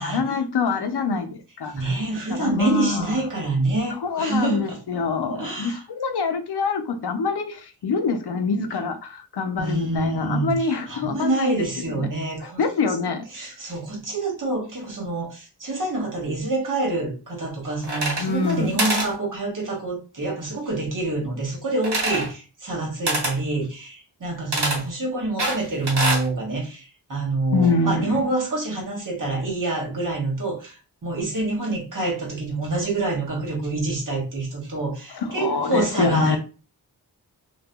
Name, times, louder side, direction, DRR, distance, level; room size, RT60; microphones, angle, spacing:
voice 1, 0.0-2.0 2.3-3.1 4.0-11.7 11.9-12.1 12.4-13.3 18.2-18.9 27.5-28.1 35.1-36.4, left 4 dB, 75° left, 0.5 m, -25 dB
voice 2, 1.7-4.8 5.2-5.8 9.6-12.6 13.3-36.4, right 2 dB, 50° right, 1.2 m, -27 dB
sound 1, 17.8-18.5 18.8-19.1 21.8-22.3 23.1-23.4 24.5-24.8 25.4-26.3, right 1 dB, 75° right, 1.0 m, -24 dB
2.6 x 2.3 x 2.3 m
wide cardioid pair, 55°, 40 cm